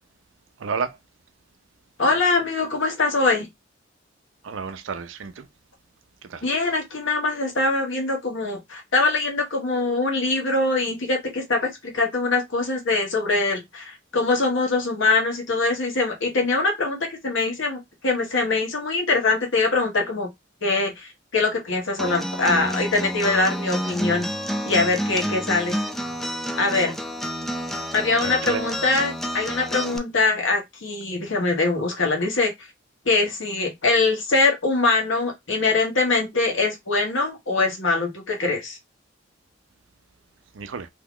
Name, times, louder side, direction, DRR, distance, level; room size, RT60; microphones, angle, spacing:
voice 1, 0.6-1.0 4.4-5.5 6.2-6.4 28.2-28.6 40.5-40.9, right 5 dB, 75° right, 0.5 m, -31 dB
voice 2, 2.0-3.5 6.4-20.3 20.6-24.3 24.6-25.8 26.6-26.9 27.9-32.7 33.0-38.8, left 3 dB, 75° left, 1.2 m, -23 dB
Acoustic guitar, 22.0-30.0, equal, ahead, 0.3 m, -29 dB
2.8 x 2.3 x 3.7 m
head